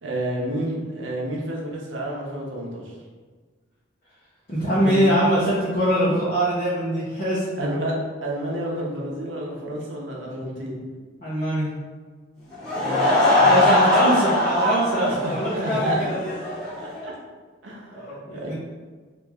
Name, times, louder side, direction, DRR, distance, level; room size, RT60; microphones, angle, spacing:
voice 1, 0.0-3.0 4.7-5.2 7.6-7.9 8.2-10.8 12.8-13.6 15.1-16.1 16.8-17.1 17.6-18.5, right 1 dB, 80° right, -3 dB, 0.7 m, -30 dB
voice 2, 4.5-7.5 11.2-11.7 13.4-16.3 17.9-18.5, equal, 40° left, -9 dB, 0.7 m, -22 dB
Laughter / Crowd, 12.5-17.0, left 1 dB, 5° left, 1.3 m, -21 dB
3.0 x 2.5 x 3.5 m, 1.4 s
head